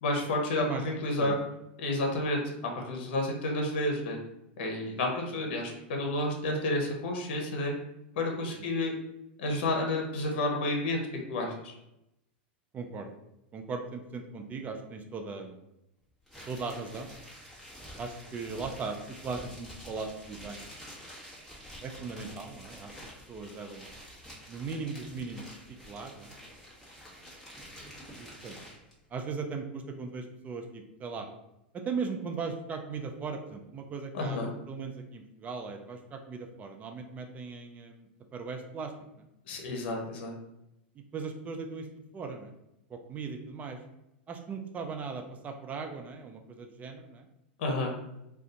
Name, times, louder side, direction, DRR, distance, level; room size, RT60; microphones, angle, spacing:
voice 1, 0.0-1.4 1.8-2.4 2.8-4.2 4.6-7.7 8.2-8.9 9.4-11.0 11.3-11.7 34.1-34.5 39.5-40.3 47.6-47.9, left 1 dB, 65° left, 1 dB, 0.9 m, -30 dB
voice 2, 12.7-13.1 13.5-15.6 16.5-17.1 18.0-19.0 19.2-20.6 21.8-23.8 24.5-25.4 25.9-26.3 27.1-27.3 28.2-28.5 29.1-31.3 31.7-38.9 41.1-41.9 42.1-42.5 42.9-43.8 44.3-47.3, right 4 dB, 25° right, 4 dB, 0.5 m, -38 dB
sound 1, 16.3-28.9, equal, 5° left, 1.2 m, -48 dB
2.6 x 2.4 x 3.8 m, 0.86 s
hypercardioid pair, 110°, 6 cm